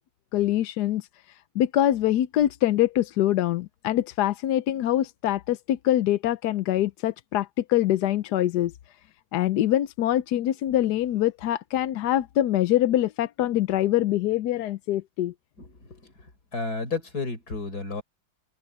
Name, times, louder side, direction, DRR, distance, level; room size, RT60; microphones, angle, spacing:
voice 1, 0.3-1.1 1.6-8.7 9.3-15.3, left 13 dB, 70° left, 1.1 m, -24 dB
voice 2, 15.6-16.1 16.5-18.0, left 3 dB, 55° left, 5.0 m, -32 dB
omnidirectional pair, 2.0 m